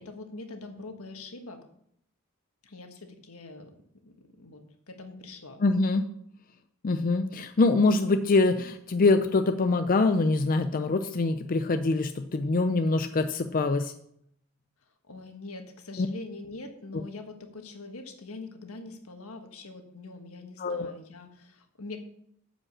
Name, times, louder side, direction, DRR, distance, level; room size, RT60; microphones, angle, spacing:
voice 1, 0.0-1.6 2.6-3.8 4.0-5.6 15.0-22.0, left 3 dB, 85° left, 5 dB, 1.5 m, -43 dB
voice 2, 5.6-6.0 6.8-13.9 16.0-16.1 20.6-20.9, left 3 dB, 40° left, 8 dB, 0.5 m, -24 dB
9.8 x 5.1 x 7.3 m, 0.71 s
head